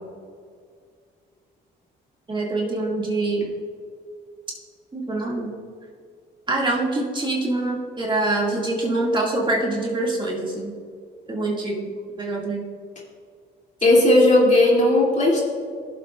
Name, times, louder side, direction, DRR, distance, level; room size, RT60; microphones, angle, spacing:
voice 1, 2.3-3.5 4.9-5.5 6.5-10.7 11.3-11.9 12.2-12.6, right 2 dB, 25° right, -3 dB, 2.0 m, -25 dB
voice 2, 13.8-15.4, left 1 dB, 35° left, -3 dB, 2.6 m, -16 dB
16.0 x 7.6 x 2.4 m, 2.1 s
cardioid pair, 90°, 20 cm